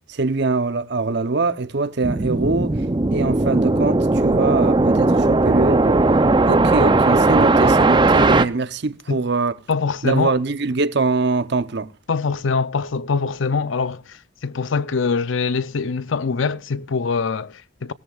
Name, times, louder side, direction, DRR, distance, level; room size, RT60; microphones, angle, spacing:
voice 1, 0.1-6.0 6.5-9.5 10.0-11.9, right 3 dB, 60° right, 0.8 m, -23 dB
sound 1, 2.0-8.5, right 2 dB, 25° right, 0.6 m, -17 dB
voice 2, 9.7-10.3 12.1-17.9, left 5 dB, 80° left, 0.6 m, -23 dB
17.5 x 13.5 x 2.4 m
head